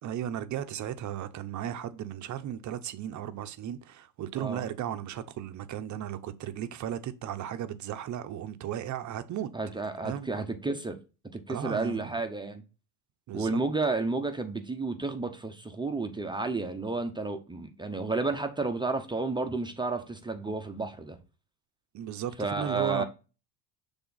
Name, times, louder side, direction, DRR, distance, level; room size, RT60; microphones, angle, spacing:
voice 1, 0.0-9.5 10.0-10.4 11.5-12.2 13.3-13.6 21.9-23.0, right 10 dB, 40° right, 0.7 m, -35 dB
voice 2, 9.5-11.0 11.3-12.6 13.3-21.2 22.4-23.0, right 3 dB, 10° right, 0.7 m, -31 dB
7.1 x 3.5 x 3.9 m
supercardioid pair, 105°, 44 cm